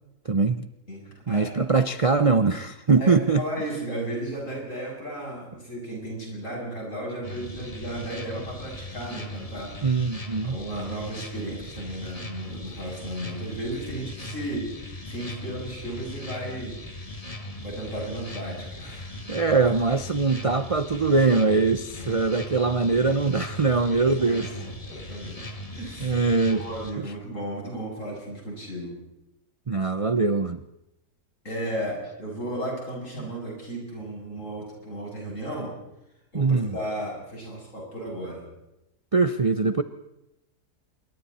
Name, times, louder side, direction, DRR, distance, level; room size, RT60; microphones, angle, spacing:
voice 1, 0.3-0.7 1.3-3.4 9.8-10.6 19.3-24.5 26.0-26.6 29.7-30.6 36.3-36.8 39.1-39.8, right 4 dB, 60° right, 11 dB, 0.3 m, -22 dB
voice 2, 0.9-1.5 2.9-3.1 3.4-9.9 10.4-17.2 17.6-19.2 22.0-22.2 24.2-26.2 26.5-29.0 31.4-35.7 36.3-38.5, right 1 dB, 45° left, -2 dB, 8.3 m, -35 dB
sound 1, 7.2-26.9, left 1 dB, 20° left, 1.7 m, -39 dB
26.5 x 23.0 x 4.3 m, 0.89 s
omnidirectional pair, 1.8 m